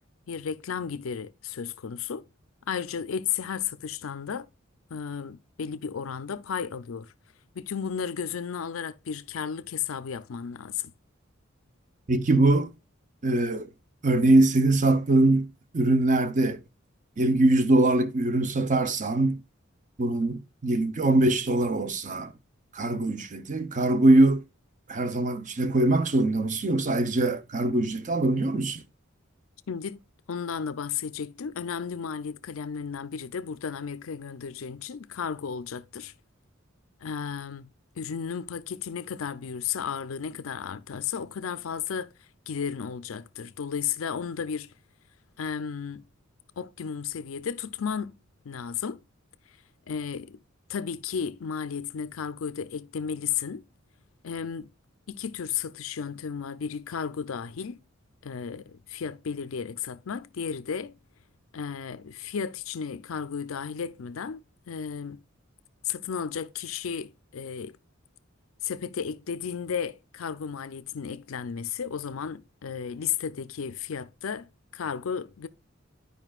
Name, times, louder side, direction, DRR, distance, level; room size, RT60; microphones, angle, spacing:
voice 1, 0.3-2.2 2.7-4.5 4.9-7.1 7.5-10.9 29.7-30.0 30.3-36.1 37.0-37.7 38.0-42.1 42.5-44.7 45.4-46.0 46.6-48.1 48.4-49.0 49.9-50.4 50.7-53.6 54.2-54.7 55.1-57.8 58.2-60.9 61.5-65.2 65.8-67.8 68.6-74.5 74.7-75.5, left 7 dB, 80° left, 0.5 m, -33 dB
voice 2, 12.1-12.7 13.2-13.7 14.0-16.6 17.2-19.4 20.0-22.3 22.7-24.4 24.9-28.8, right 2 dB, 40° right, 0.7 m, -22 dB
11.0 x 5.1 x 2.4 m
head